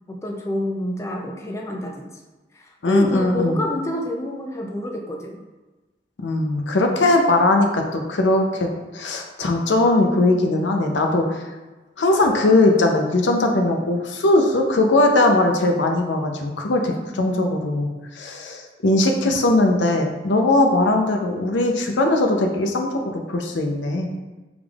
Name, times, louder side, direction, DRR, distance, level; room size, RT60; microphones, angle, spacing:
voice 1, 0.1-2.2 2.5-5.4 16.9-17.4 19.0-19.4, left 1 dB, 15° left, 0 dB, 0.3 m, -28 dB
voice 2, 2.8-3.6 6.2-8.7 8.9-11.4 12.0-17.9 18.1-22.9 23.3-24.1, left 2 dB, 85° left, 3 dB, 0.6 m, -19 dB
5.1 x 3.6 x 2.3 m, 1.2 s
head